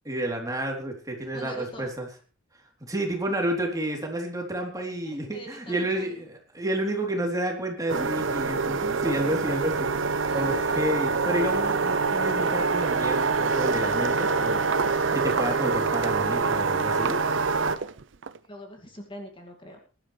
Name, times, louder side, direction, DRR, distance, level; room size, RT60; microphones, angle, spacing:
voice 1, 0.1-2.1 2.9-17.2, right 1 dB, 20° right, 1 dB, 3.6 m, -30 dB
voice 2, 1.3-1.9 5.0-6.2 10.3-10.8 18.5-19.8, left 1 dB, 25° left, 2 dB, 2.4 m, -43 dB
sound 1, 7.9-17.8, right 4 dB, 85° right, 1.0 m, -25 dB
Walk footsteps, 11.9-12.0 12.3-18.4, right 5 dB, 70° right, 0.6 m, -36 dB
21.5 x 12.0 x 3.4 m, 0.35 s
head